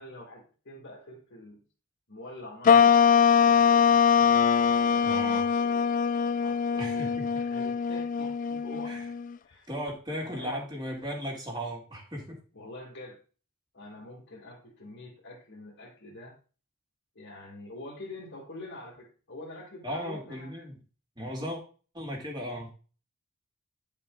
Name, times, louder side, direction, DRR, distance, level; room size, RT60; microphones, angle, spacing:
voice 1, 0.0-1.6 2.1-4.0 4.8-6.0 6.4-9.0 9.4-9.7 10.2-10.5 12.5-13.2 13.7-16.4 17.2-20.6, left 1 dB, 60° left, -3 dB, 2.1 m, -45 dB
sound 1, 2.6-9.3, left 7 dB, 40° left, 0.4 m, -22 dB
voice 2, 5.0-5.4 6.8-7.3 8.8-9.1 9.7-12.4 19.8-20.8 21.2-21.6 21.9-22.7, equal, 20° right, -1 dB, 2.6 m, -36 dB
10.5 x 5.2 x 3.9 m, 0.37 s
head